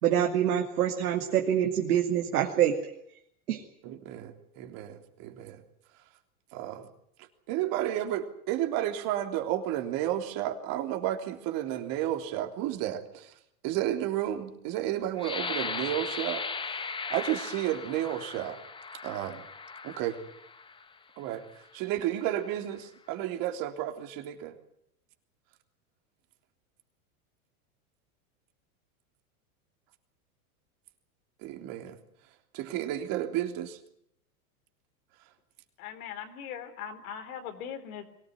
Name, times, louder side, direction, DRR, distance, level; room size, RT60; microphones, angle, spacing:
voice 1, 0.0-2.8 3.5-3.6, right 10 dB, 80° right, 1 dB, 2.7 m, -25 dB
voice 2, 3.8-5.6 6.5-6.9 7.5-13.3 13.6-16.4 17.1-18.6 19.0-19.4 19.8-20.2 21.2-21.4 21.7-24.5 31.4-32.0 32.5-33.8, right 12 dB, 50° right, 5 dB, 3.4 m, -32 dB
sound 1, 15.2-20.8 21.5-21.7 22.1-22.6, left 5 dB, 10° left, 0.9 m, -38 dB
voice 3, 35.8-38.1, left 8 dB, 70° left, 6 dB, 4.0 m, -40 dB
23.0 x 18.0 x 9.6 m, 0.73 s
hypercardioid pair, 120°, 45 cm